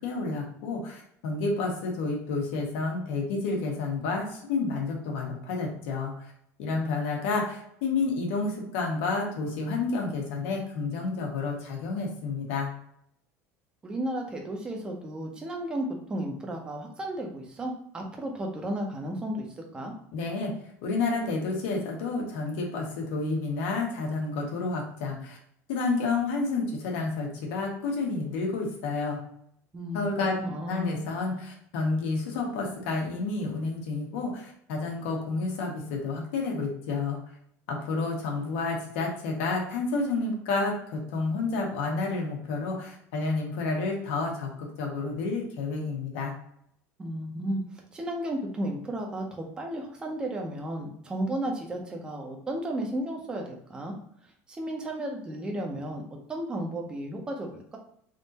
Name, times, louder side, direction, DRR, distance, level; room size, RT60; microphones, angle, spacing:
voice 1, 0.0-6.2 6.6-12.7 20.1-20.5 20.8-25.4 25.7-29.2 29.9-30.4 30.7-37.2 37.7-46.3, left 3 dB, 85° left, 0 dB, 1.2 m, -30 dB
voice 2, 13.8-19.5 19.7-19.9 29.7-30.1 30.4-31.0 47.0-47.6 47.9-53.9 54.5-56.0 56.3-57.8, right 1 dB, 10° right, 1 dB, 0.6 m, -33 dB
3.6 x 2.6 x 4.0 m, 0.68 s
cardioid pair, 175°, 7 cm